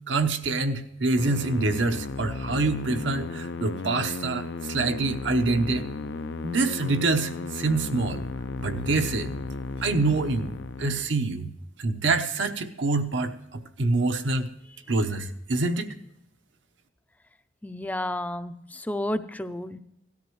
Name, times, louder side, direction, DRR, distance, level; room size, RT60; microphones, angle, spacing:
voice 1, 0.1-5.8 6.4-8.2 8.6-9.3 9.8-10.5 10.8-11.5 11.8-14.5 14.9-15.9, right 3 dB, 75° right, 7 dB, 0.9 m, -26 dB
sound 1, 1.2-11.1, left 3 dB, 65° left, 0.5 m, -35 dB
voice 2, 17.6-19.8, left 1 dB, 10° left, 10 dB, 0.5 m, -31 dB
17.5 x 13.0 x 3.1 m, 0.84 s
head